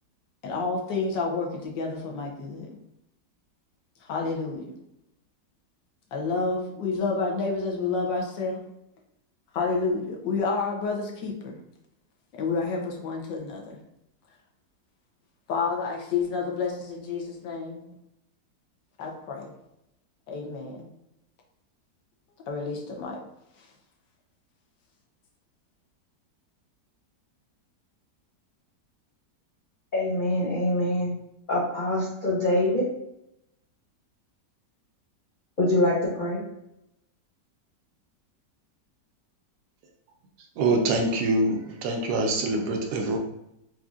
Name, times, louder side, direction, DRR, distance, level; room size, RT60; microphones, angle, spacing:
voice 1, 0.4-2.8 4.1-4.6 6.1-8.6 9.5-11.6 12.3-13.8 15.5-17.8 19.0-19.5 20.3-20.9 22.5-23.2, left 4 dB, 85° left, 1.5 m, -29 dB
voice 2, 29.9-31.1 31.5-32.9 35.6-36.4, left 1 dB, 60° left, 0.5 m, -24 dB
voice 3, 40.6-43.2, right 2 dB, 75° right, 1.1 m, -25 dB
4.7 x 2.7 x 2.4 m
omnidirectional pair, 1.9 m